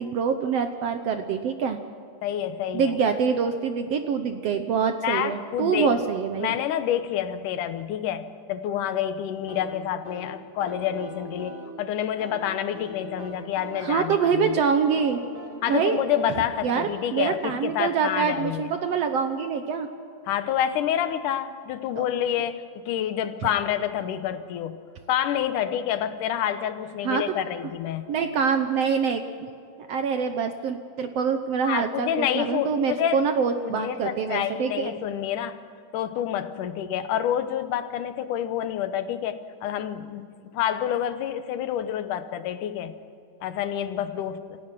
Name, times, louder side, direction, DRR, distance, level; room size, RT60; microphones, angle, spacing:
voice 1, 0.0-1.8 2.7-6.5 13.8-15.2 15.7-16.0 16.6-19.9 22.0-22.1 23.4-23.5 27.0-27.2 28.1-29.5 29.9-34.9, right 6 dB, 70° right, 7 dB, 1.7 m, -25 dB
voice 2, 2.2-2.9 5.0-6.1 6.4-14.6 15.6-18.7 20.3-24.8 25.1-28.1 31.7-33.3 33.6-35.6 35.9-43.0 43.4-44.6, left 10 dB, 75° left, 11 dB, 2.5 m, -28 dB
sound 1, 9.5-18.1, right 1 dB, 45° right, 5.2 m, -43 dB
28.0 x 16.0 x 6.0 m, 2.5 s
omnidirectional pair, 3.7 m